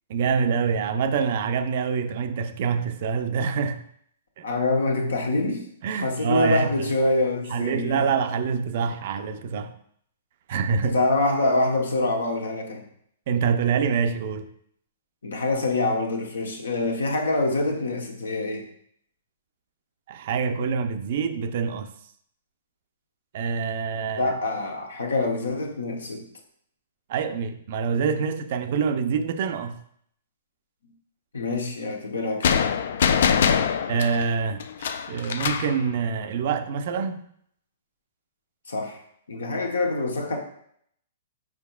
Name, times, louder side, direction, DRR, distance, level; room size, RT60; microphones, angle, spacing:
voice 1, 0.1-3.8 4.4-4.5 5.8-6.9 7.5-9.7 10.5-11.0 13.3-14.5 20.1-21.9 23.3-24.3 27.1-29.8 33.9-37.2, right 6 dB, 55° right, 0.4 m, -26 dB
voice 2, 4.4-5.6 5.9-8.0 10.8-12.9 15.2-18.7 24.2-26.2 31.3-32.6 38.7-39.0 39.3-40.4, left 2 dB, 80° left, 0.9 m, -25 dB
sound 1, 32.4-35.8, left 7 dB, 65° left, 0.3 m, -23 dB
4.9 x 4.7 x 2.3 m
hypercardioid pair, 125°, 0 cm